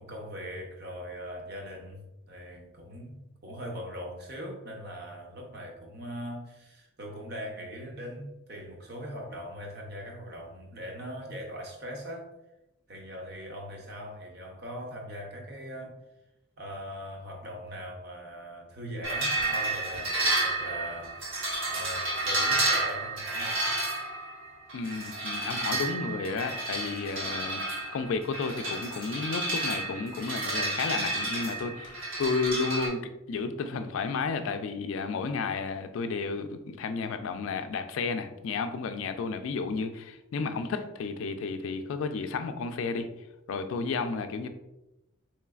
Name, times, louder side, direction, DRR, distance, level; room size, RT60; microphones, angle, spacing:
voice 1, 0.0-12.3 12.9-16.0 16.6-21.3 21.7-23.7, equal, 50° right, 1 dB, 0.7 m, -41 dB
sound 1, 19.0-32.9, right 2 dB, 70° right, 1.1 m, -31 dB
voice 2, 24.7-27.6 27.9-43.1 43.5-44.5, left 4 dB, 70° left, 8 dB, 0.3 m, -32 dB
4.0 x 3.1 x 2.3 m, 0.93 s
head